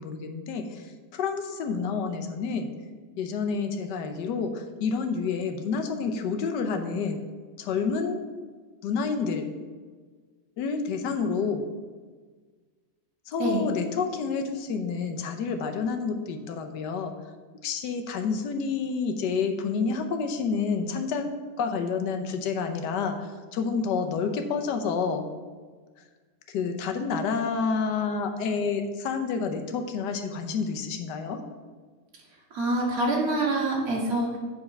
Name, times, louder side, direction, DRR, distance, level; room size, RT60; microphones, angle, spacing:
voice 1, 0.0-2.7 3.2-7.2 7.6-8.2 8.8-9.5 10.6-11.7 13.3-17.1 17.6-21.3 21.6-25.3 26.5-31.4, left 5 dB, 75° left, 6 dB, 1.4 m, -29 dB
voice 2, 32.5-34.4, right 2 dB, 55° right, -3 dB, 2.0 m, -26 dB
7.7 x 4.5 x 5.9 m, 1.4 s
omnidirectional pair, 1.9 m